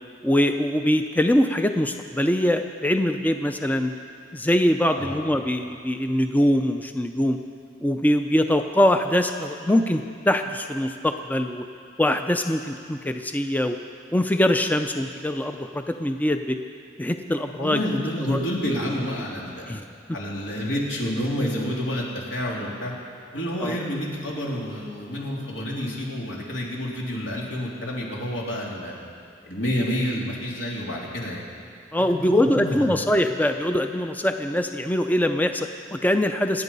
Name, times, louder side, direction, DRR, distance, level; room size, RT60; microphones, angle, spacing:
voice 1, 0.2-3.9 4.3-7.4 7.8-11.7 12.0-13.8 14.1-16.6 17.0-17.8 18.3-18.4 19.7-19.8 23.6-23.8 31.9-36.6, left 1 dB, 10° left, 6 dB, 0.5 m, -23 dB
voice 2, 17.6-19.7 20.1-22.9 23.3-28.9 29.4-31.4 32.1-32.9, equal, 85° left, -3 dB, 3.2 m, -29 dB
26.0 x 9.2 x 5.4 m, 2.3 s
head